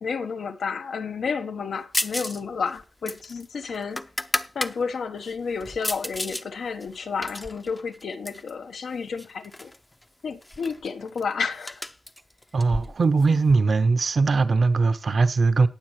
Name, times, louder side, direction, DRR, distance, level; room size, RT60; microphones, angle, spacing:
voice 1, 0.0-4.0 4.5-9.7 10.2-11.8, left 5 dB, 85° left, 1.1 m, -31 dB
sound 1, 1.9-2.4 2.7-4.7 5.2-6.4 6.8-8.5 9.2-9.8 10.0-10.1 10.4-13.5, left 1 dB, 15° left, 0.6 m, -32 dB
voice 2, 12.5-15.7, right 4 dB, 55° right, 0.8 m, -20 dB
19.0 x 7.3 x 3.1 m
wide cardioid pair, 105°, 0 cm